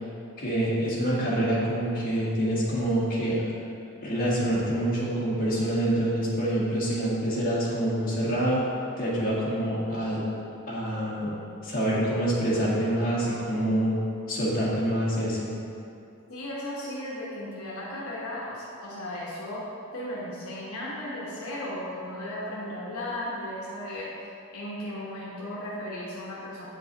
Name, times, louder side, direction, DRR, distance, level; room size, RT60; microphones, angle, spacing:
voice 1, 0.4-3.4 4.0-8.6 9.0-10.2 10.7-11.3 11.6-13.9 14.3-15.5, right 1 dB, 40° left, -8 dB, 1.7 m, -26 dB
voice 2, 16.3-19.6 19.9-24.1 24.5-26.7, left 1 dB, 75° left, -6 dB, 1.1 m, -35 dB
8.2 x 4.6 x 4.0 m, 2.6 s
head